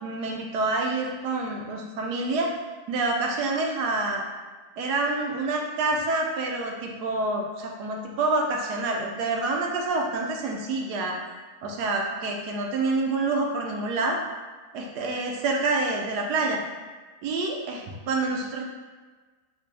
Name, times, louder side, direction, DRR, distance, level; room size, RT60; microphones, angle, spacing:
voice 1, 0.0-2.5 2.9-4.2 4.8-11.2 11.6-14.2 14.7-16.6 17.2-18.6, right 3 dB, 80° right, 1 dB, 1.2 m, -27 dB
4.1 x 2.1 x 3.3 m, 1.4 s
omnidirectional pair, 1.7 m